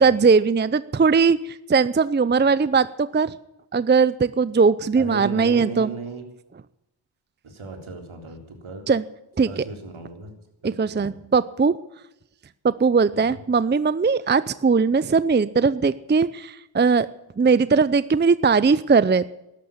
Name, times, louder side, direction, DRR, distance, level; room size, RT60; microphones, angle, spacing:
voice 1, 0.0-2.9 3.1-3.3 3.7-5.9 8.9-9.0 9.4-9.6 10.6-11.8 12.6-17.1 17.4-19.3, right 5 dB, 20° right, 16 dB, 0.5 m, -19 dB
voice 2, 5.0-6.2 7.4-8.9 9.5-10.3 10.6-11.2 13.1-13.3, right 3 dB, 70° right, 3 dB, 3.8 m, -36 dB
13.0 x 11.5 x 8.8 m, 0.90 s
cardioid pair, 55°, 50 cm